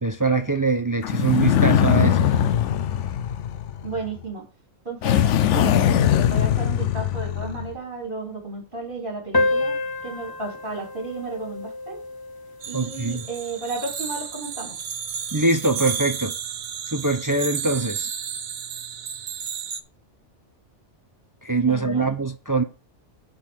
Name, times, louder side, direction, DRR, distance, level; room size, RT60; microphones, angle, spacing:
voice 1, 0.0-2.6 12.7-13.2 15.3-16.3 16.9-18.1 21.4-22.6, right 3 dB, 20° right, 0.7 m, -23 dB
sound 1, 1.0-4.1 5.0-7.7, left 10 dB, 90° left, 1.0 m, -21 dB
voice 2, 3.8-4.4 4.8-12.0 12.6-14.8 21.7-22.1, right 2 dB, 45° right, 4.2 m, -33 dB
sound 2, 9.3-14.3, left 2 dB, 25° left, 0.5 m, -29 dB
sound 3, 12.6-19.8, right 7 dB, 75° right, 1.3 m, -32 dB
10.5 x 4.1 x 7.3 m
omnidirectional pair, 1.2 m